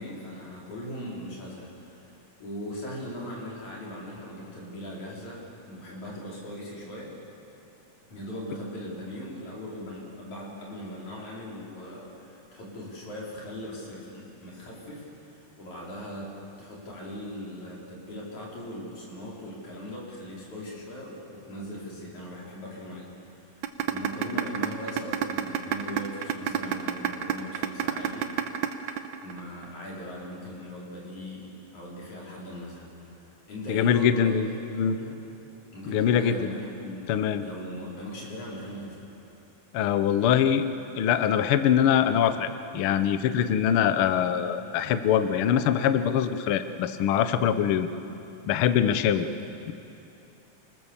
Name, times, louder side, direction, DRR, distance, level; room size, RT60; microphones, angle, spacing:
voice 1, 0.0-7.1 8.1-15.1 15.6-16.3 16.6-23.1 23.4-28.4 29.2-32.9 33.5-34.5 34.9-35.2 35.7-37.1 37.4-39.0, left 1 dB, 60° left, -5 dB, 6.2 m, -39 dB
sound 1, 23.6-29.6, right 9 dB, 70° right, 2.2 m, -28 dB
voice 2, 33.7-34.5 34.7-35.0 35.9-36.3 37.1-37.4 39.7-40.6 41.0-42.5 42.7-47.9 48.5-49.3 49.7-49.8, left 9 dB, 85° left, 10 dB, 1.1 m, -23 dB
30.0 x 19.5 x 7.4 m, 2.8 s
omnidirectional pair, 3.7 m